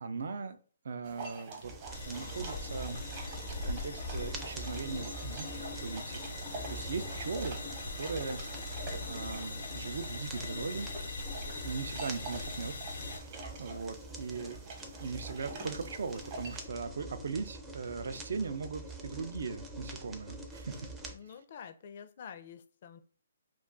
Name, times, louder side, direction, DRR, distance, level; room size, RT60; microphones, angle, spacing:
voice 1, 0.0-0.6 0.8-1.7 2.0-3.0 3.7-6.4 6.7-8.4 9.0-10.9 11.6-12.8 13.2-14.6 15.0-20.9 21.3-21.4, right 4 dB, 70° right, 0.4 m, -39 dB
sound 1, 1.0-16.7, right 2 dB, 35° right, 0.8 m, -47 dB
sound 2, 1.6-21.2, right 2 dB, 10° right, 0.4 m, -45 dB
sound 3, 1.9-13.2, left 3 dB, 80° left, 0.7 m, -41 dB
voice 2, 21.1-23.0, left 7 dB, 45° left, 0.4 m, -48 dB
2.3 x 2.3 x 3.7 m
hypercardioid pair, 160°, 0 cm